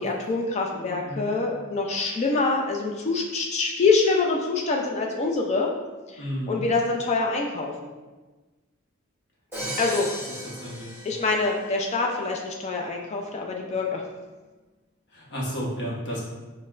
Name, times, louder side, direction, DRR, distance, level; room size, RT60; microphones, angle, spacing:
voice 1, 0.0-5.7 6.1-7.9 9.8-10.1 11.0-14.0, left 3 dB, 30° left, 0 dB, 0.3 m, -25 dB
voice 2, 0.7-1.3 6.2-6.6 9.6-9.7 10.3-11.0 15.1-16.2, equal, 55° left, -4 dB, 1.0 m, -33 dB
Crash cymbal, 9.5-11.7, equal, 10° right, 1.0 m, -36 dB
6.2 x 2.1 x 2.4 m, 1.2 s
head